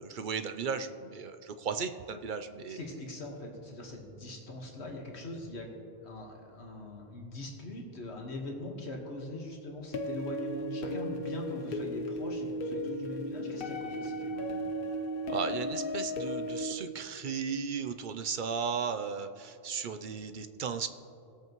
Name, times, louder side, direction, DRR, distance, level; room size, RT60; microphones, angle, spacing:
voice 1, 0.0-2.8 15.3-20.9, right 6 dB, 55° right, 9 dB, 0.7 m, -35 dB
voice 2, 2.7-5.7 6.0-14.7, left 2 dB, 90° left, 0 dB, 1.8 m, -42 dB
sound 1, 9.9-16.7, equal, 60° left, 0.9 m, -35 dB
21.0 x 8.2 x 3.0 m, 2.6 s
omnidirectional pair, 1.1 m